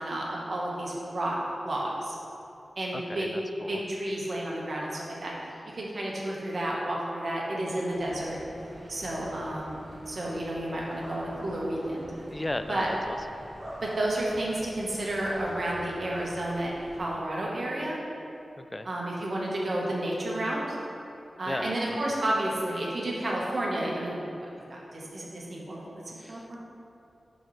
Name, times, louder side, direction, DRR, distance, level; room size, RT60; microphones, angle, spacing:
voice 1, 0.0-1.4 1.6-2.1 2.8-3.3 3.7-5.3 5.7-8.4 8.9-9.8 10.1-12.1 12.7-12.9 13.8-18.0 18.8-20.8 21.4-24.2 24.7-26.6, right 1 dB, 60° right, -4 dB, 1.3 m, -31 dB
voice 2, 2.9-3.8 12.3-13.2 18.6-18.9 21.5-22.0 26.2-26.5, left 1 dB, 25° left, 9 dB, 0.3 m, -36 dB
sound 1, 7.9-17.0, equal, 30° right, 1.6 m, -46 dB
11.0 x 4.1 x 3.3 m, 2.7 s
wide cardioid pair, 80°, 0 cm